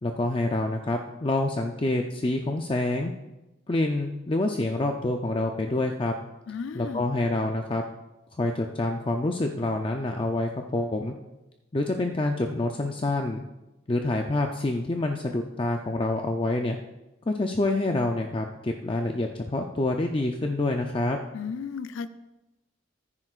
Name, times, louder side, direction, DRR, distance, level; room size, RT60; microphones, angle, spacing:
voice 1, 0.0-3.1 3.7-6.1 6.7-7.8 8.4-11.1 11.7-13.4 13.9-16.8 17.3-21.2, left 2 dB, 25° left, 3 dB, 0.5 m, -27 dB
voice 2, 6.5-7.1 21.3-22.1, left 6 dB, 90° left, 13 dB, 0.4 m, -34 dB
14.5 x 9.7 x 2.4 m, 0.99 s
head